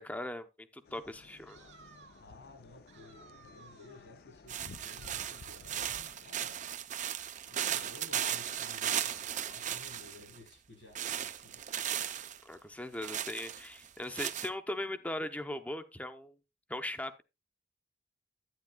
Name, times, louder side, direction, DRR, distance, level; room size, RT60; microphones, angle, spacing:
voice 1, 0.0-1.7 12.4-16.4 16.7-17.2, left 1 dB, 10° left, 0.7 m, -39 dB
sound 1, 0.8-6.3, left 4 dB, 60° left, 0.5 m, -55 dB
sound 2, 1.5-2.3 2.9-4.1 4.7-5.8, right 5 dB, 80° right, 1.5 m, -58 dB
voice 2, 2.2-6.6 7.5-11.6, left 2 dB, 85° left, 5.2 m, -55 dB
sound 3, 4.5-10.4 11.0-12.4 13.0-14.5, right 10 dB, 45° right, 0.5 m, -36 dB
10.5 x 9.5 x 2.2 m
head